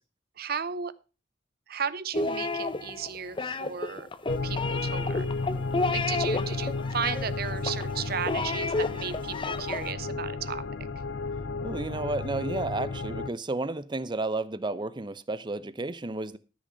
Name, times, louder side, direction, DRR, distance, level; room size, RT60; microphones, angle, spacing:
voice 1, 0.4-0.9 1.7-4.1 4.4-5.3 5.9-10.9, right 7 dB, 55° right, 0.8 m, -35 dB
sound 1, 2.1-9.9, left 3 dB, 25° left, 0.8 m, -31 dB
sound 2, 4.3-13.3, left 3 dB, 65° left, 0.6 m, -33 dB
voice 2, 11.6-16.4, right 2 dB, 25° right, 0.7 m, -32 dB
14.0 x 6.2 x 5.6 m
head